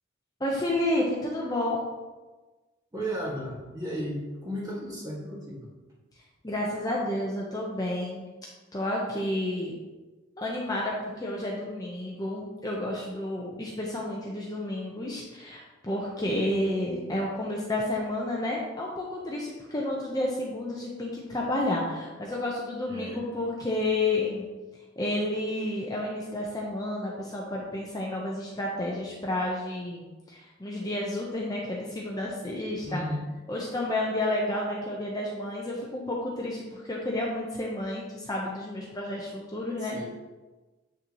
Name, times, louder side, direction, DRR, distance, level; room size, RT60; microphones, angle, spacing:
voice 1, 0.4-1.8 6.4-8.3 8.7-9.7 10.4-24.5 25.0-33.0 33.5-40.0, left 1 dB, 20° left, -3 dB, 0.8 m, -31 dB
voice 2, 2.9-5.7 22.8-23.2 32.9-33.3 39.8-40.1, equal, 20° right, -4 dB, 1.7 m, -34 dB
7.7 x 6.5 x 3.0 m, 1.2 s
head